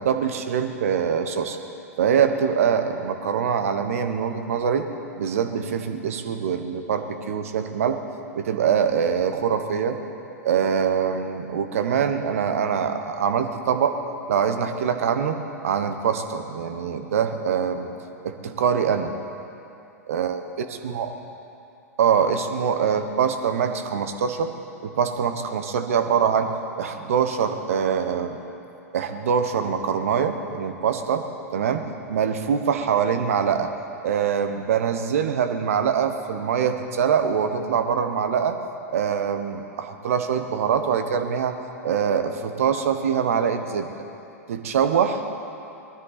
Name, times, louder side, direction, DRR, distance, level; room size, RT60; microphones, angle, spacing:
voice 1, 0.0-1.6 2.0-4.9 5.2-8.0 8.4-10.0 10.4-14.0 14.3-15.4 15.6-17.9 18.2-19.1 20.1-20.4 20.8-21.1 22.0-24.5 24.8-26.5 26.8-28.4 28.9-31.2 31.5-33.7 34.0-38.6 38.9-41.6 41.8-43.9 44.5-45.2, right 7 dB, 60° right, 8 dB, 1.2 m, -23 dB
20.0 x 13.5 x 4.1 m, 2.7 s
figure-of-eight pair, 100°, 9 cm